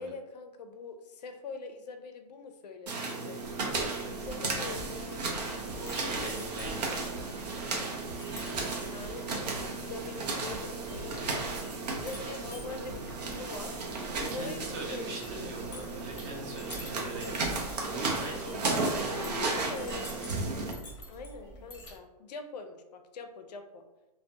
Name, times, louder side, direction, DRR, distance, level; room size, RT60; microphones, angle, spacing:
voice 1, 0.0-3.4 4.1-5.3 6.0-6.5 8.8-13.8 14.3-16.1 19.0-20.4 21.1-23.8, left 4 dB, 85° left, 7 dB, 0.4 m, -43 dB
sound 1, 2.9-20.7, right 3 dB, 90° right, 0.6 m, -34 dB
Chink clink, 3.4-22.0, right 1 dB, 20° left, 0.6 m, -48 dB
voice 2, 3.6-4.0 5.8-7.5 14.1-17.5 17.8-19.4, right 2 dB, 25° right, -1 dB, 0.5 m, -41 dB
sound 2, 3.7-3.8 4.2-4.4 4.7-6.3 6.6-8.7 9.0-11.1 11.4-13.2, right 1 dB, 65° right, 0.9 m, -48 dB
2.2 x 2.1 x 2.7 m, 1.0 s
hypercardioid pair, 160°, 20 cm